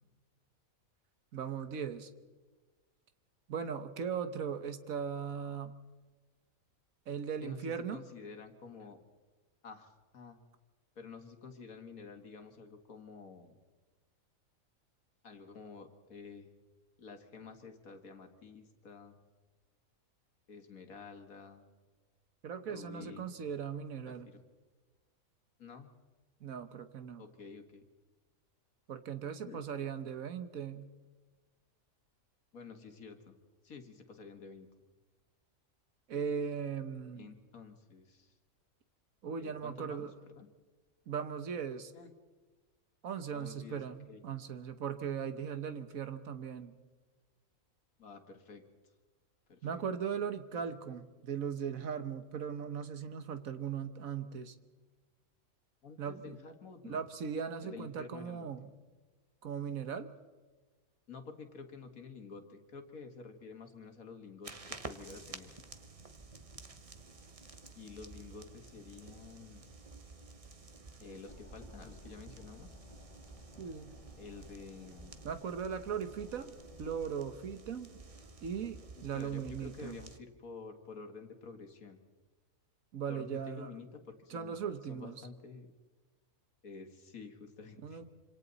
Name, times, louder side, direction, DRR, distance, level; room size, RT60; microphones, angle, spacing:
voice 1, 1.3-2.1 3.5-5.7 7.1-8.0 22.4-24.3 26.4-27.2 28.9-30.9 36.1-37.3 39.2-40.1 41.1-41.9 43.0-46.7 49.6-54.5 56.0-56.4 56.8-58.7 59.4-60.1 73.6-73.9 75.2-77.9 78.4-80.0 82.9-83.7 84.3-85.3 87.8-88.0, right 7 dB, 75° right, 10 dB, 1.5 m, -38 dB
voice 2, 7.4-9.0 9.6-10.4 11.0-13.6 15.2-16.5 17.0-19.2 20.5-21.7 22.6-23.3 24.1-24.4 25.6-25.9 27.2-27.8 29.4-29.6 32.5-33.4 33.6-34.7 37.2-38.3 39.4-40.1 40.4-40.5 41.9-42.1 43.3-44.2 48.0-48.6 49.5-49.8 50.5-50.6 55.8-57.0 57.6-58.7 61.1-65.5 67.8-69.6 71.0-72.7 74.2-75.2 79.0-82.0 83.1-84.6 84.9-85.7 86.6-88.0, left 5 dB, 80° left, 6 dB, 2.2 m, -50 dB
sound 1, 64.4-80.2, right 3 dB, 30° right, 1.0 m, -51 dB
sound 2, 71.3-77.0, left 1 dB, 25° left, 1.2 m, -57 dB
26.5 x 26.0 x 4.1 m, 1.3 s
omnidirectional pair, 1.4 m